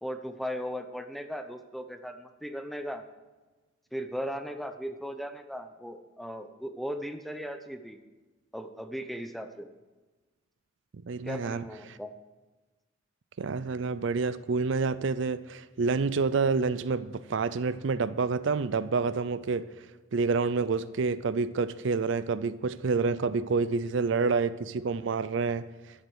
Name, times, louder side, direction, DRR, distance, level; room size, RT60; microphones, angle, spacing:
voice 1, 0.0-3.1 3.9-8.0 8.5-9.7 11.2-12.1, equal, ahead, 7 dB, 0.7 m, -37 dB
voice 2, 11.1-12.0 13.4-19.7 20.1-25.7, right 4 dB, 65° right, 15 dB, 0.5 m, -28 dB
12.5 x 8.1 x 6.3 m, 1.2 s
head